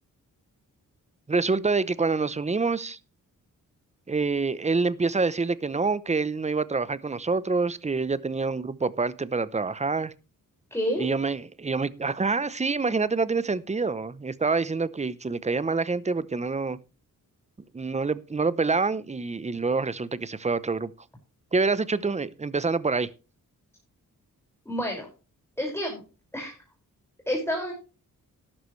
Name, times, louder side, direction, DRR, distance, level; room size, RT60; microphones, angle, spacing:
voice 1, 1.3-3.0 4.1-10.1 11.0-16.8 17.7-20.9 21.5-23.1, right 4 dB, 20° right, 17 dB, 0.8 m, -26 dB
voice 2, 10.7-11.1 24.7-25.1 25.6-26.0 26.3-26.5 27.3-27.7, equal, 10° left, -1 dB, 5.7 m, -28 dB
12.5 x 12.0 x 3.2 m, 0.33 s
cardioid pair, 75°, 33 cm